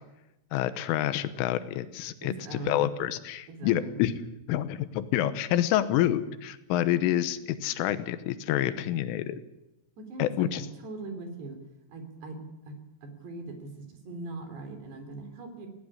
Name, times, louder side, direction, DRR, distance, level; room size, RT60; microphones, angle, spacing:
voice 1, 0.5-2.3 2.7-4.2 4.5-9.4 10.2-10.7, left 12 dB, 85° left, 12 dB, 3.5 m, -28 dB
voice 2, 2.2-2.9 3.5-4.0 10.0-11.6 11.9-12.8 13.0-15.7, right 3 dB, 60° right, 6 dB, 5.0 m, -41 dB
18.0 x 17.5 x 9.8 m, 0.95 s
omnidirectional pair, 5.7 m